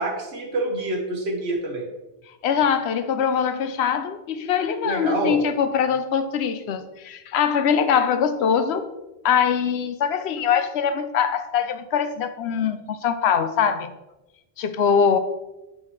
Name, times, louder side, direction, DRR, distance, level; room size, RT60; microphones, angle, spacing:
voice 1, 0.0-1.9 4.8-5.4, right 2 dB, 85° right, 1.5 m, -26 dB
voice 2, 2.4-8.9 9.2-13.9 14.6-15.2, left 7 dB, 90° left, 0.9 m, -22 dB
8.0 x 5.6 x 3.1 m
omnidirectional pair, 1.0 m